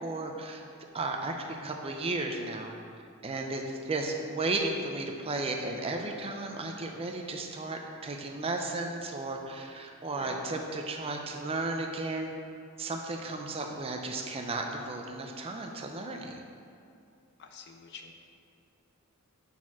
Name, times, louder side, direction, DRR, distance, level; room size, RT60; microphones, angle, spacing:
voice 1, 0.0-0.6 0.9-2.7 3.2-12.3 12.8-16.4, right 2 dB, 30° right, 2 dB, 0.5 m, -34 dB
voice 2, 10.1-10.5 17.4-18.1, left 5 dB, 55° left, 5 dB, 0.5 m, -46 dB
6.2 x 4.2 x 6.0 m, 2.5 s
head